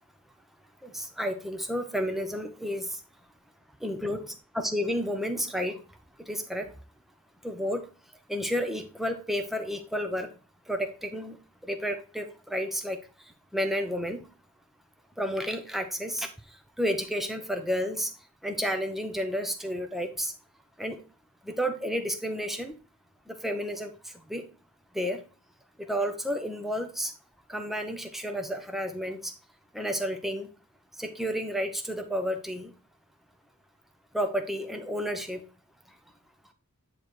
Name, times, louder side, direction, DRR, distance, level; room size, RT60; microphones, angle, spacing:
voice 1, 0.8-2.9 3.8-4.2 4.6-5.8 6.3-6.7 7.4-7.8 8.3-10.3 10.7-11.4 11.7-13.0 13.5-14.2 15.2-16.3 16.8-18.1 18.4-20.3 20.8-21.0 21.5-22.7 23.3-23.9 24.3-24.4 24.9-25.2 25.9-27.1 27.5-29.3 29.7-30.5 31.0-32.7 34.1-35.4, equal, ahead, 5 dB, 0.8 m, -31 dB
9.8 x 3.3 x 4.4 m, 0.34 s
head